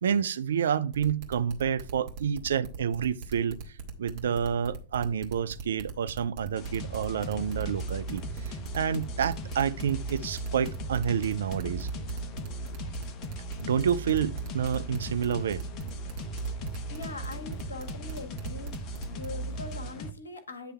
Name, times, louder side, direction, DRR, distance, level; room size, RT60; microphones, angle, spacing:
voice 1, 0.0-3.6 4.0-11.9 13.6-15.6, right 8 dB, 65° right, 0.4 m, -29 dB
sound 1, 0.9-19.3, right 5 dB, 45° right, 1.6 m, -40 dB
sound 2, 6.6-20.1, right 1 dB, 35° left, 0.9 m, -37 dB
voice 2, 16.9-18.8 19.1-20.7, left 3 dB, 75° left, 1.1 m, -42 dB
9.3 x 3.3 x 5.5 m
figure-of-eight pair, 90°, 0 cm